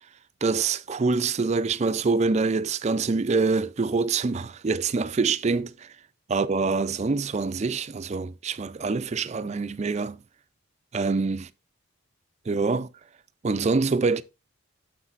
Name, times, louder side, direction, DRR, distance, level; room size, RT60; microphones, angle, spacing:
voice 1, 0.4-5.9 6.3-10.2 10.9-11.5 12.5-12.9 13.4-14.2, right 4 dB, 30° right, 0.4 m, -25 dB
9.7 x 7.3 x 2.5 m
head